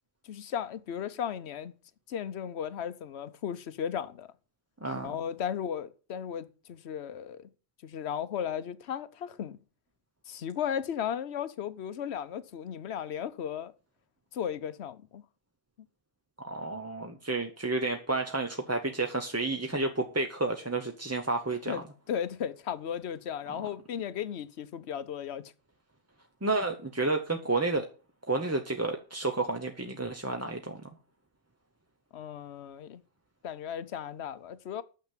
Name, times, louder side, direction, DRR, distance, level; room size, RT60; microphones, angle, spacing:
voice 1, 0.2-1.7 2.1-4.3 5.0-7.5 7.8-9.6 10.3-13.7 14.3-15.2 21.7-25.4 32.1-33.0 33.4-34.8, left 8 dB, 70° left, 1.0 m, -35 dB
voice 2, 4.8-5.1 16.4-21.8 23.6-23.7 26.4-27.9 28.3-30.8, right 2 dB, 15° right, 0.7 m, -31 dB
9.3 x 6.7 x 7.3 m
omnidirectional pair, 1.2 m